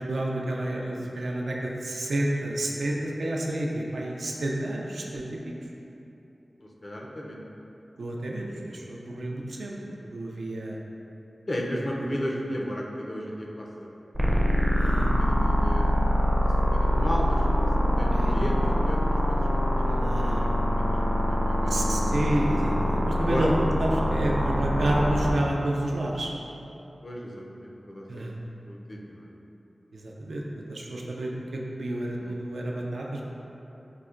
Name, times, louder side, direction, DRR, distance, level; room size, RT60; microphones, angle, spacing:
voice 1, 0.0-5.5 8.0-10.8 11.8-11.9 14.7-15.1 18.1-18.4 20.0-20.4 21.7-26.3 28.1-28.4 29.9-30.4 30.7-33.3, right 1 dB, 90° right, -2 dB, 0.4 m, -30 dB
voice 2, 6.6-7.4 11.5-13.9 14.8-16.1 16.4-19.0 19.3-22.0 23.2-23.5 27.0-28.3 28.7-29.3 32.2-32.3, equal, 45° left, -2 dB, 0.4 m, -35 dB
sound 1, 14.1-25.3, equal, 15° right, 0.4 m, -24 dB
5.3 x 2.1 x 2.4 m, 3.0 s
wide cardioid pair, 75°, 0 cm